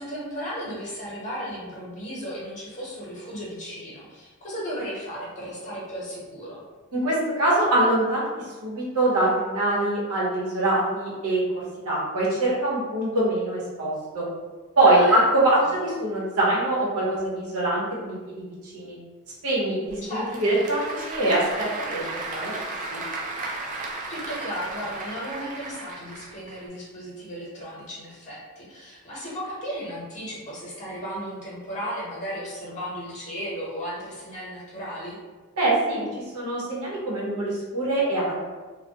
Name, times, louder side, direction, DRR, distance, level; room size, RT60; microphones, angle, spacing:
voice 1, 0.0-6.6 14.8-15.2 15.6-15.7 20.0-20.6 23.7-35.2, equal, 35° left, -6 dB, 0.9 m, -35 dB
voice 2, 6.9-8.3 8.6-14.2 14.8-19.0 19.4-23.0 35.6-38.4, right 2 dB, 80° right, -5 dB, 0.9 m, -24 dB
Applause / Crowd, 19.9-26.6, right 3 dB, 35° right, 0.4 m, -35 dB
2.2 x 2.1 x 2.7 m, 1.3 s
head